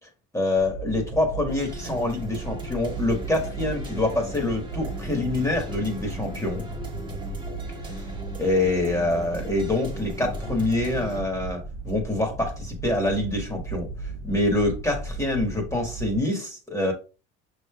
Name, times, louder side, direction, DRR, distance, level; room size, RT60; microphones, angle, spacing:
voice 1, 0.3-6.6 8.4-13.9 14.2-16.9, left 2 dB, 10° left, 2 dB, 1.5 m, -25 dB
sound 1, 0.6-16.2, right 4 dB, 50° right, 1.1 m, -36 dB
sound 2, 1.5-11.2, equal, 15° right, 1.2 m, -39 dB
5.8 x 3.4 x 2.3 m, 0.33 s
cardioid pair, 105°, 29 cm